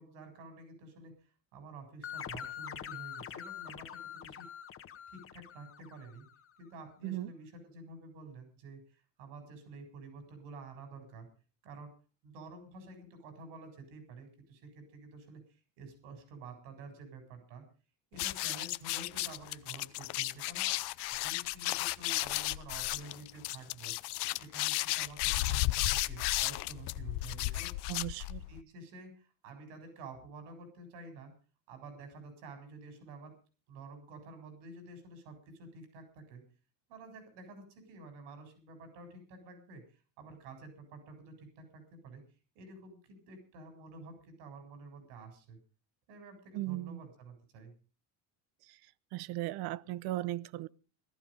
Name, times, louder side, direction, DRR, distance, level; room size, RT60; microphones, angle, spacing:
voice 1, 0.0-4.5 5.1-6.2 6.6-11.3 11.6-11.9 12.2-17.6 18.1-20.7 21.1-27.7 28.5-31.3 31.7-33.3 33.7-36.4 36.9-42.2 42.5-45.6 46.1-47.7, right 3 dB, 85° right, 7.7 m, -50 dB
sound 1, 2.0-6.4, left 9 dB, 30° left, 1.4 m, -44 dB
sound 2, 18.1-28.6, left 19 dB, 70° left, 0.8 m, -34 dB
voice 2, 27.9-28.4 46.5-47.0 48.7-48.8 49.1-50.7, right 17 dB, 65° right, 0.9 m, -37 dB
17.5 x 13.5 x 5.3 m
cardioid pair, 145°, 41 cm